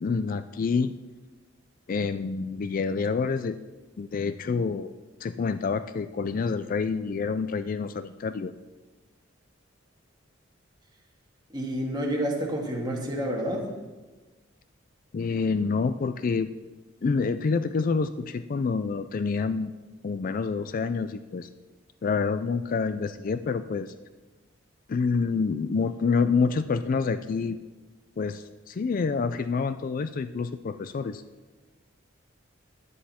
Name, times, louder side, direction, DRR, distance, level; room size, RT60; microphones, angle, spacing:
voice 1, 0.0-0.9 1.9-3.6 4.0-4.9 5.2-8.5 15.1-16.5 17.0-19.7 20.0-21.5 22.0-23.9 24.9-27.6 28.2-31.2, left 4 dB, 45° left, 12 dB, 0.4 m, -27 dB
voice 2, 11.5-13.7, equal, 20° right, -1 dB, 1.9 m, -29 dB
11.0 x 9.3 x 4.3 m, 1.2 s
head